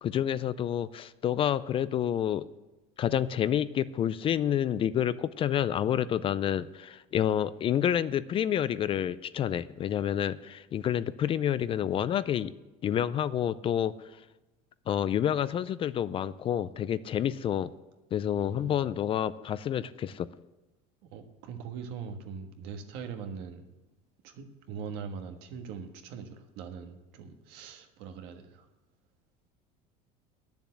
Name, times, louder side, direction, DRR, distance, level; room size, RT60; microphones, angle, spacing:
voice 1, 0.0-2.5 3.0-12.5 12.8-13.9 14.9-17.7 18.1-20.3, left 10 dB, 30° left, 16 dB, 0.3 m, -29 dB
voice 2, 18.3-18.9 21.1-23.7 24.2-28.7, right 6 dB, 70° right, 5 dB, 1.5 m, -42 dB
9.9 x 7.0 x 8.4 m, 1.1 s
cardioid pair, 130°, 18 cm